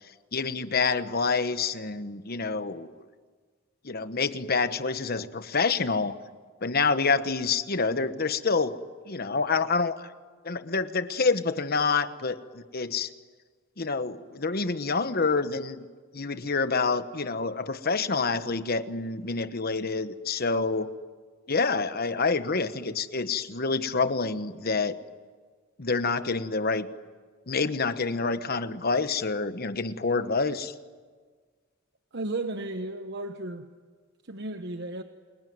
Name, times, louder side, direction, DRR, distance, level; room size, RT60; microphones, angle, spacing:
voice 1, 0.3-2.9 3.8-6.2 6.6-8.8 9.1-10.0 10.4-13.1 13.8-15.9 16.1-20.9 21.5-25.0 25.8-26.9 27.5-30.7, left 4 dB, 50° left, 11 dB, 1.1 m, -27 dB
voice 2, 32.1-33.7 34.2-35.0, right 2 dB, 60° right, 7 dB, 1.1 m, -34 dB
29.0 x 21.5 x 9.4 m, 1.5 s
head